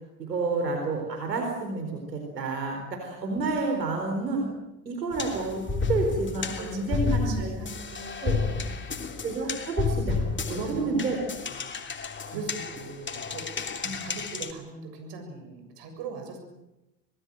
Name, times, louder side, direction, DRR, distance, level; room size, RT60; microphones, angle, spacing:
voice 1, 0.2-4.5 4.9-7.5 8.2-8.4 9.2-10.2 10.5-11.2 12.3-12.4 13.8-13.9, right 3 dB, 85° right, 2 dB, 4.4 m, -29 dB
sound 1, 5.1-14.5, left 4 dB, 25° left, 3.1 m, -31 dB
voice 2, 6.4-8.9 9.4-9.6 10.0-11.2 12.3-13.5 14.0-16.4, right 4 dB, 55° right, 5 dB, 7.3 m, -41 dB
25.5 x 20.0 x 7.8 m, 0.95 s
hypercardioid pair, 70°, 49 cm